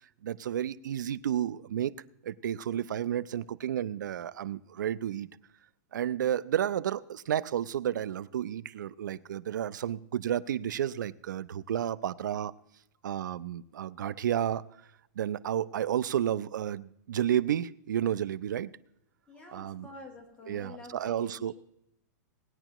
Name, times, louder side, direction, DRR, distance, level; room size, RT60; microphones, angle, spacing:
voice 1, 0.2-1.9 2.2-5.3 5.9-12.5 13.0-14.6 15.2-18.7 19.5-19.9 20.5-21.5, right 10 dB, 85° right, 0.5 m, -31 dB
voice 2, 19.3-21.6, left 3 dB, 10° left, 2.0 m, -48 dB
19.5 x 9.8 x 3.0 m
hypercardioid pair, 155°, 10 cm